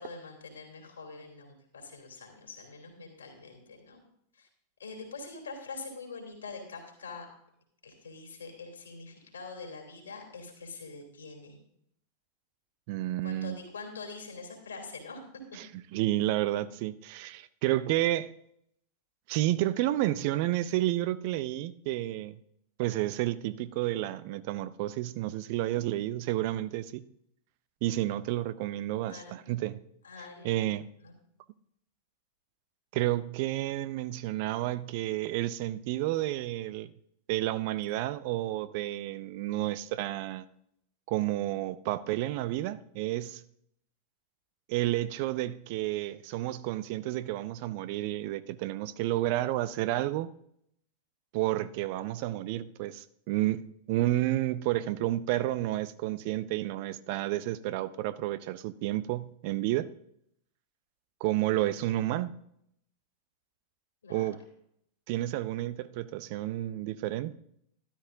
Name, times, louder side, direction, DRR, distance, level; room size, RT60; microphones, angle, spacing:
voice 1, 0.0-4.0 4.3-4.5 4.8-7.3 7.8-11.6 13.2-15.2 28.3-28.5 29.1-29.6 30.0-30.7 31.0-31.1 61.5-61.9 64.0-64.3, left 4 dB, 70° left, 3.0 m, -44 dB
voice 2, 12.9-13.6 15.6-15.7 15.9-18.3 19.3-22.4 22.8-27.0 27.8-29.8 30.4-30.9 32.9-36.9 37.3-40.4 41.1-43.4 44.7-50.3 51.3-59.9 61.2-62.3 64.1-64.4 65.1-67.3, right 15 dB, 45° right, 0.5 m, -31 dB
13.0 x 12.5 x 2.6 m
figure-of-eight pair, 90°, 0 cm